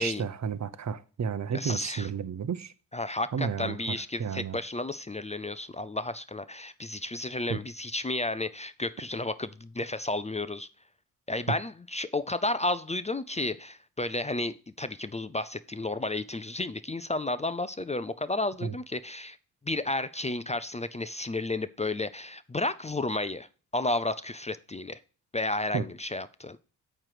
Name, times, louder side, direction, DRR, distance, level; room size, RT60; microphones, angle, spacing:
voice 1, 0.0-2.7 3.3-4.6 7.5-7.6 18.6-18.7 25.7-25.8, right 6 dB, 45° right, 0.8 m, -32 dB
voice 2, 1.5-2.1 2.9-10.7 11.3-19.4 19.7-23.5 23.7-25.0 25.3-26.6, left 2 dB, 15° left, 0.5 m, -32 dB
8.7 x 3.3 x 6.0 m
supercardioid pair, 55°, 39 cm